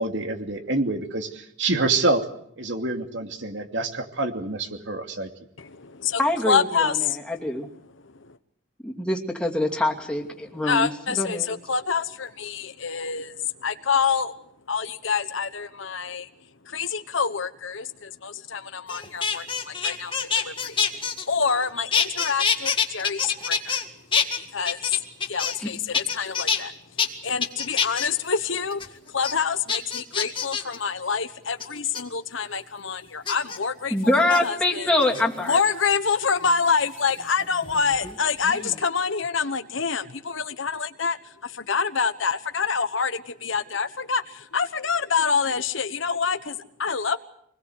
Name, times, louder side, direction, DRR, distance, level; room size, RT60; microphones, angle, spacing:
voice 1, 0.0-2.3 2.6-5.3, right 2 dB, 70° right, 5 dB, 2.6 m, -26 dB
voice 2, 5.6-6.2 6.5-7.2 8.0-8.4 10.4-14.3 14.7-16.3 16.6-23.8 24.4-25.0 25.3-26.7 27.2-34.9 35.4-41.2 41.4-47.2, left 5 dB, 80° left, 10 dB, 1.2 m, -27 dB
voice 3, 6.2-6.9 7.3-7.7 8.8-10.9 11.2-11.5 25.6-25.7 33.9-35.6, left 1 dB, 5° left, 0 dB, 2.7 m, -24 dB
sound 1, 18.9-21.6 21.9-23.8 24.1-25.7 25.9-26.6 27.0-27.1 27.4-28.1 28.5-28.9 29.2-29.3 29.7-30.8 31.6-32.0 33.3-33.6 34.2-34.4 35.0-35.6 37.0-38.2 38.4-38.8, left 6 dB, 25° left, 1.9 m, -26 dB
26.0 x 20.5 x 8.0 m, 0.73 s
head